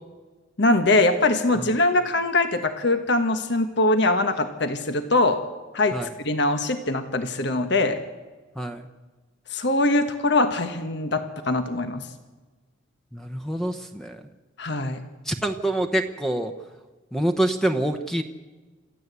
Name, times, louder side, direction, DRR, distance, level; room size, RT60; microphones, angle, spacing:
voice 1, 0.6-5.4 5.7-6.0 6.2-8.0 9.5-12.1 14.6-15.0, left 2 dB, 60° left, 8 dB, 1.3 m, -22 dB
voice 2, 8.6-8.9 13.1-14.2 15.2-16.5 17.1-18.2, right 1 dB, ahead, 6 dB, 0.9 m, -26 dB
27.0 x 14.0 x 8.2 m, 1.3 s
head